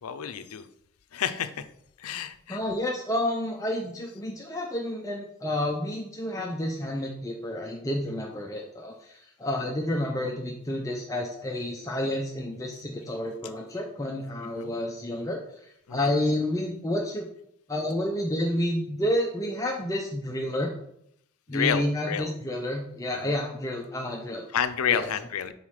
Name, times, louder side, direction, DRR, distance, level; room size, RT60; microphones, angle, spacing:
voice 1, 0.0-0.6 1.1-1.6 2.0-2.6 14.6-14.8 15.9-16.1 21.5-22.3 23.1-23.3 24.5-25.5, left 8 dB, 85° left, 12 dB, 0.5 m, -29 dB
voice 2, 2.5-17.3 17.7-20.7 21.5-24.5 24.9-25.1, left 1 dB, 15° left, 0 dB, 0.5 m, -30 dB
5.6 x 4.2 x 4.8 m, 0.74 s
head